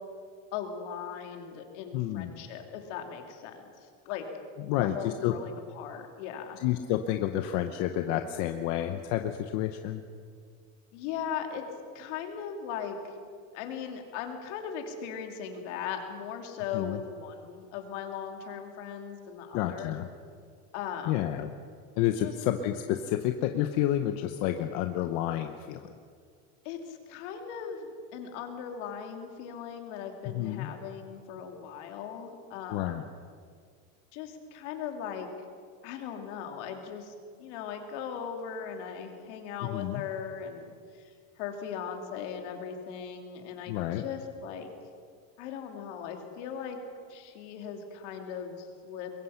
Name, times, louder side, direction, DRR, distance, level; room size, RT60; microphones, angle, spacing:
voice 1, 0.5-4.3 4.6-6.6 10.9-11.7 11.9-13.0 13.5-20.0 20.7-21.2 22.2-22.3 26.6-32.9 34.1-35.3 35.8-44.7 45.4-46.8 47.1-49.1, left 7 dB, 65° left, 3 dB, 3.1 m, -38 dB
voice 2, 1.9-2.4 4.7-5.3 6.6-10.0 16.7-17.0 19.5-20.1 21.1-21.5 22.0-25.9 30.2-30.7 32.7-33.0 39.6-40.0 43.7-44.0, left 12 dB, 45° left, 7 dB, 0.9 m, -30 dB
23.5 x 22.0 x 5.8 m, 2.1 s
cardioid pair, 175°, 38 cm